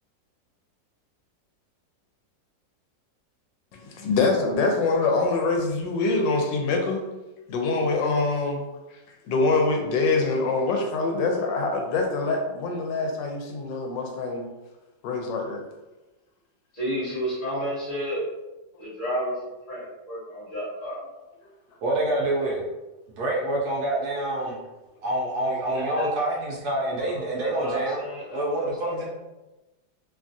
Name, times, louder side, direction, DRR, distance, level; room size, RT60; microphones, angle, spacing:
voice 1, 3.7-7.0 7.5-8.6 9.3-14.5 15.0-15.6, left 3 dB, 80° left, 2 dB, 1.2 m, -24 dB
voice 2, 16.7-18.2 18.8-19.3 19.7-21.0 25.7-26.1 27.0-29.1, equal, 40° left, -9 dB, 1.3 m, -31 dB
voice 3, 21.8-22.7 23.2-24.6 25.0-28.0 28.3-29.1, right 1 dB, 70° right, -3 dB, 1.0 m, -26 dB
3.1 x 2.3 x 2.5 m, 1.0 s
omnidirectional pair, 2.0 m